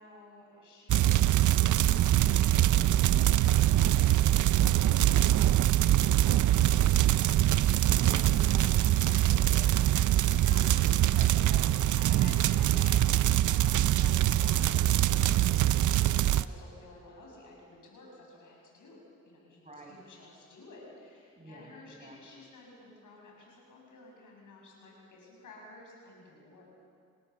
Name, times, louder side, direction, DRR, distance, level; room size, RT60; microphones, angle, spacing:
voice 1, 0.0-7.5 7.8-10.6 11.9-19.0 19.3-19.6 19.9-26.6, left 2 dB, 80° left, -2 dB, 7.6 m, -52 dB
sound 1, 0.9-16.4, right 13 dB, 75° right, 0.6 m, -24 dB
voice 2, 10.3-12.2 13.4-13.6 19.6-19.9 21.4-22.4, right 1 dB, 25° right, 0 dB, 7.1 m, -49 dB
28.5 x 18.5 x 7.1 m, 2.4 s
cardioid pair, 80°, 30 cm